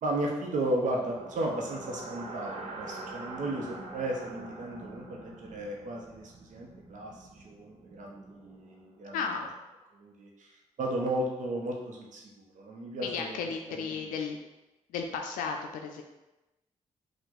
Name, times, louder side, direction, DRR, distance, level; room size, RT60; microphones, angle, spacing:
voice 1, 0.0-9.2 9.9-10.5 10.8-13.4 13.7-14.1, right 1 dB, 70° right, -1 dB, 1.0 m, -34 dB
sound 1, 0.9-9.0, right 3 dB, 50° right, 0.9 m, -45 dB
voice 2, 9.1-9.5 13.0-14.4 14.9-16.0, left 5 dB, 90° left, 4 dB, 0.4 m, -34 dB
5.1 x 2.5 x 4.0 m, 1.0 s
cardioid pair, 60°, 14 cm